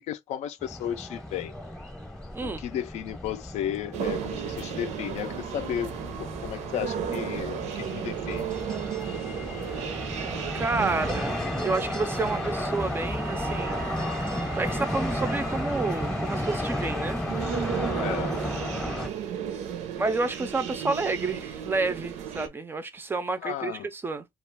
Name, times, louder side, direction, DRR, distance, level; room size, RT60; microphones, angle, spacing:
voice 1, 0.0-1.5 2.4-5.9 6.2-8.6 18.0-18.4 23.4-23.9, left 10 dB, 75° left, 0.4 m, -34 dB
sound 1, 0.6-19.1, left 1 dB, 5° left, 0.7 m, -33 dB
sound 2, 3.9-22.5, right 8 dB, 90° right, 0.5 m, -35 dB
voice 2, 10.5-13.9 14.5-17.2 20.0-24.3, right 3 dB, 20° right, 0.3 m, -30 dB
2.3 x 2.2 x 3.3 m
cardioid pair, 150°, 12 cm